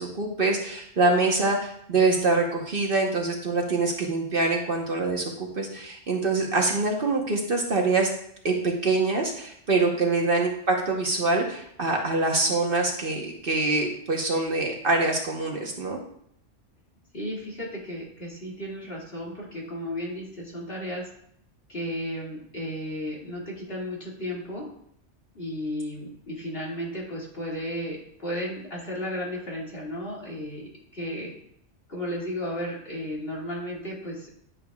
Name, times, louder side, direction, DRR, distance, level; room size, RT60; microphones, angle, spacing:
voice 1, 0.0-8.1 8.4-16.0, right 3 dB, 50° right, 0 dB, 1.2 m, -25 dB
voice 2, 17.1-21.1 21.7-24.6 25.3-31.3 31.9-34.4, equal, 50° left, -5 dB, 2.5 m, -34 dB
10.5 x 7.5 x 2.4 m, 0.70 s
omnidirectional pair, 1.2 m